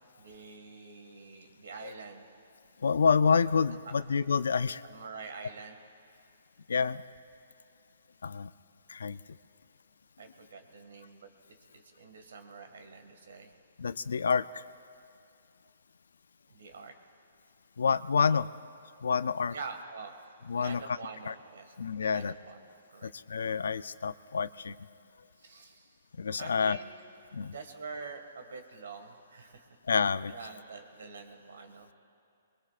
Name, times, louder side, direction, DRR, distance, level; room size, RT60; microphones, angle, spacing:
voice 1, 0.2-2.3 4.9-5.8 10.2-13.5 16.5-16.9 19.5-20.1 20.5-23.1 25.4-26.0 26.3-26.8 27.5-29.7 30.3-31.9, right 4 dB, 80° right, 6 dB, 1.9 m, -46 dB
voice 2, 2.8-4.8 6.7-7.0 8.2-8.5 8.9-9.2 13.8-14.6 17.8-18.5 19.0-19.5 20.5-21.0 21.3-21.4 21.8-22.3 23.0-24.8 26.2-26.8 27.3-27.5 29.9-30.3, left 5 dB, 85° left, 16 dB, 0.4 m, -28 dB
23.5 x 21.5 x 2.5 m, 2.4 s
hypercardioid pair, 155°, 0 cm